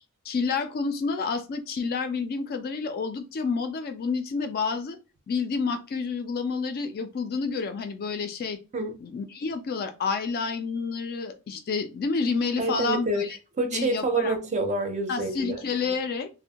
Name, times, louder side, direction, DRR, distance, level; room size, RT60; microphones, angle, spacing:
voice 1, 0.3-5.0 5.3-8.6 9.0-13.4 13.7-14.4 15.1-16.3, left 4 dB, 45° left, 0.3 m, -29 dB
voice 2, 12.6-15.6, right 2 dB, 30° right, 0.5 m, -28 dB
2.5 x 2.0 x 2.8 m
head